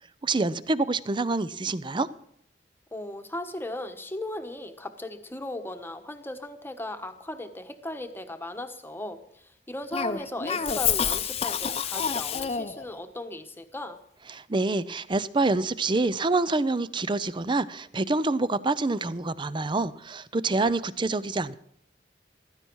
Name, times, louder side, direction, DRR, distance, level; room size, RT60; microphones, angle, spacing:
voice 1, 0.2-2.1 14.3-21.5, right 3 dB, 30° right, 17 dB, 0.6 m, -26 dB
voice 2, 2.9-14.0, left 1 dB, 15° left, 7 dB, 1.2 m, -37 dB
Cough, 9.9-12.9, left 7 dB, 35° left, 0.7 m, -28 dB
15.5 x 13.0 x 4.6 m, 0.71 s
head